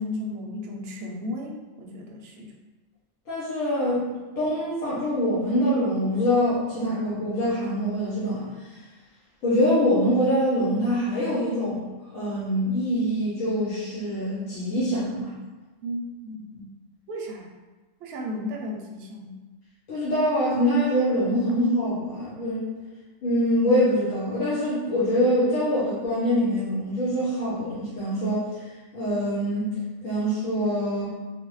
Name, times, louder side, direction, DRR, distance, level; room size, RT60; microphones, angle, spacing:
voice 1, 0.0-2.5 15.8-16.7 17.1-17.5 18.0-19.4, left 1 dB, 65° right, 0 dB, 0.7 m, -34 dB
voice 2, 3.3-4.1 4.4-8.8 9.4-15.3 19.9-22.7 23.2-28.5 28.9-29.7 30.0-31.1, equal, 90° left, -9 dB, 1.2 m, -24 dB
3.3 x 2.0 x 3.1 m, 1.2 s
omnidirectional pair, 1.3 m